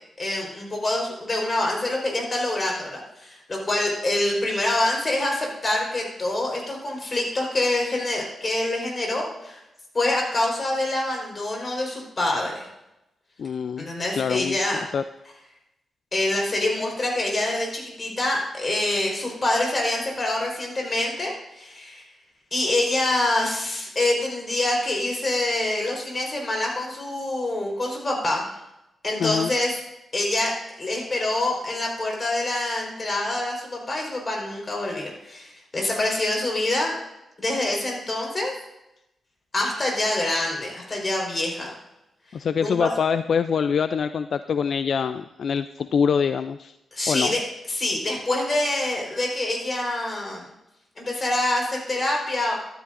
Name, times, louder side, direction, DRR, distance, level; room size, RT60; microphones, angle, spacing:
voice 1, 0.2-9.6 9.9-12.7 13.8-14.8 16.1-22.0 22.5-28.5 29.0-29.8 30.1-30.5 30.8-36.9 37.4-38.5 39.5-41.7 42.6-42.9 46.9-47.4 47.7-50.4 51.0-52.5, left 1 dB, 30° left, -1 dB, 4.1 m, -26 dB
voice 2, 13.4-13.9 14.2-14.6 14.9-15.0 29.2-29.5 42.3-46.7 47.1-47.4, left 6 dB, 65° left, 11 dB, 0.3 m, -24 dB
13.5 x 12.0 x 2.5 m, 0.91 s
cardioid pair, 100°, 0 cm